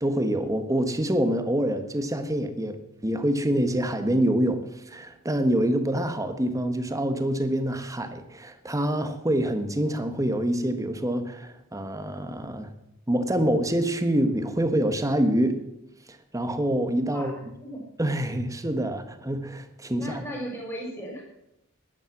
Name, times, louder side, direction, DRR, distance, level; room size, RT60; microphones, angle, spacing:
voice 1, 0.0-2.8 3.0-12.7 13.1-15.6 16.3-17.3 18.0-20.2, right 1 dB, 15° right, 8 dB, 1.3 m, -26 dB
voice 2, 17.1-17.9 19.9-21.2, equal, 10° left, -1 dB, 4.8 m, -36 dB
12.0 x 10.5 x 7.2 m, 0.85 s
head